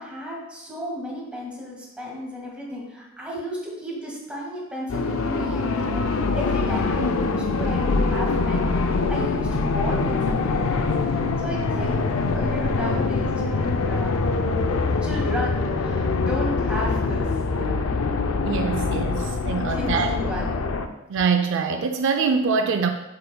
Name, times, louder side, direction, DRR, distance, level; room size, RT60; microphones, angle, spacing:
voice 1, 0.0-14.2 15.0-17.9 19.7-20.7, equal, 5° right, -5 dB, 1.8 m, -33 dB
sound 1, 4.9-20.9, left 3 dB, 90° left, 0.5 m, -24 dB
voice 2, 18.4-20.1 21.1-22.9, right 5 dB, 65° right, 5 dB, 0.4 m, -24 dB
7.7 x 5.7 x 2.2 m, 0.96 s
head